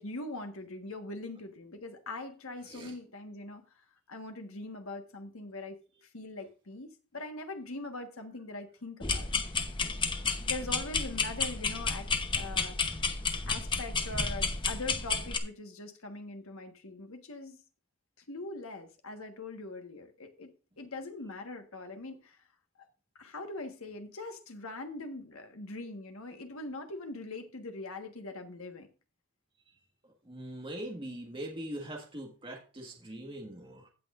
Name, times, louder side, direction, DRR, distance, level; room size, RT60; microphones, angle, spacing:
voice 1, 0.0-9.3 10.5-13.0 13.5-17.6 18.3-22.5 22.8-22.9 23.1-28.9, left 2 dB, 70° left, 1.4 m, -42 dB
sound 1, 9.0-15.4, left 4 dB, 20° left, 0.8 m, -31 dB
voice 2, 30.2-33.9, right 1 dB, 25° right, 1.5 m, -41 dB
17.0 x 6.1 x 2.5 m
head